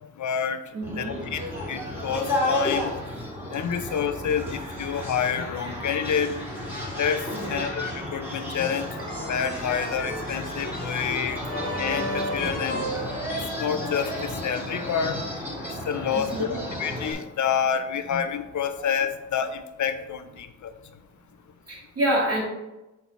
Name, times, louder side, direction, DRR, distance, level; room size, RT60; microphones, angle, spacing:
voice 1, 0.2-0.6 1.0-1.4 1.7-2.9 3.5-6.4 7.0-8.9 9.3-11.4 11.8-12.8 13.6-15.3 15.6-20.7, left 7 dB, 80° left, 10 dB, 0.6 m, -28 dB
voice 2, 0.7-1.2 7.3-7.7 16.1-16.6 21.1-21.2 21.7-22.4, right 1 dB, 55° right, -4 dB, 2.2 m, -28 dB
sound 1, 0.8-17.1, left 1 dB, 5° right, 2.1 m, -33 dB
sound 2, 8.5-13.9, equal, 30° left, 1.3 m, -34 dB
6.0 x 4.3 x 4.1 m, 0.99 s
wide cardioid pair, 100°, 29 cm